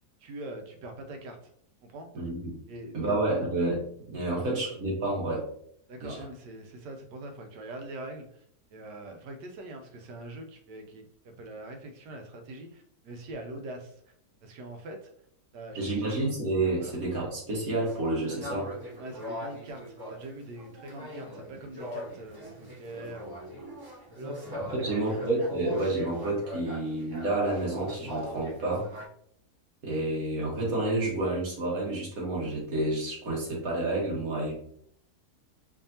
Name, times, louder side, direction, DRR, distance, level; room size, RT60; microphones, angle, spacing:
voice 1, 0.2-1.5 1.9-2.1 2.7-3.2 4.4-4.5 5.9-8.4 8.7-14.0 14.4-15.1 15.5-16.2 16.8-16.9 19.0-23.4 24.1-25.2, right 1 dB, 85° right, 4 dB, 1.3 m, -43 dB
voice 2, 2.1-2.6 2.9-3.8 4.1-5.5 6.0-6.2 15.8-18.7 24.6-28.9 29.8-34.5, right 2 dB, 60° right, -3 dB, 1.7 m, -29 dB
sound 1, 17.8-29.0, left 1 dB, 30° right, 0.4 m, -41 dB
4.7 x 2.7 x 2.7 m, 0.66 s
omnidirectional pair, 1.8 m